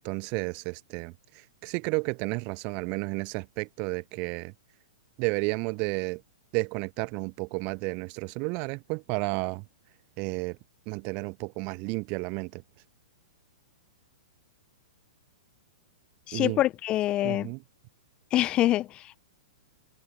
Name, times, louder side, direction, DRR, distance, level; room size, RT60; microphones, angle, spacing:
voice 1, 0.0-4.5 5.2-6.2 6.5-9.6 10.2-10.6 10.9-12.6 16.3-16.6 17.2-17.6, right 32 dB, 35° right, 0.3 m, -32 dB
voice 2, 16.3-17.5 18.3-19.2, left 14 dB, 25° left, 0.9 m, -25 dB
figure-of-eight pair, 110°, 4 cm